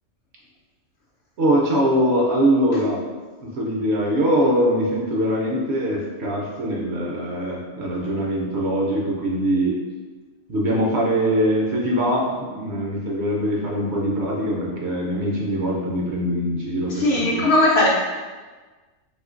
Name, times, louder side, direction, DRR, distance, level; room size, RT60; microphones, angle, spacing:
voice 1, 1.4-3.0 3.4-9.8 10.5-17.5, equal, 65° right, -2 dB, 0.8 m, -22 dB
voice 2, 16.9-17.9, left 1 dB, 60° left, -4 dB, 0.7 m, -18 dB
2.7 x 2.5 x 3.7 m, 1.3 s
omnidirectional pair, 1.4 m